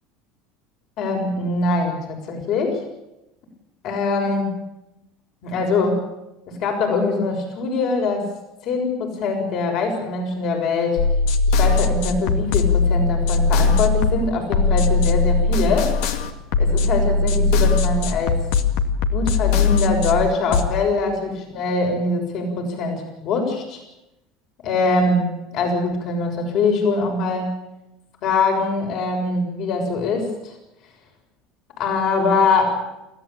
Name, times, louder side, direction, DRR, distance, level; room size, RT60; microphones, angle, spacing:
voice 1, 1.0-2.8 3.8-4.6 5.4-6.0 6.5-8.3 8.6-11.0 11.6-15.9 16.6-18.4 19.1-23.8 24.6-27.6 28.2-30.5 31.8-32.8, left 3 dB, 55° left, 3 dB, 6.6 m, -23 dB
sound 1, 11.0-20.7, left 4 dB, 80° left, 2.2 m, -20 dB
29.5 x 14.5 x 8.8 m, 0.94 s
supercardioid pair, 105°, 0 cm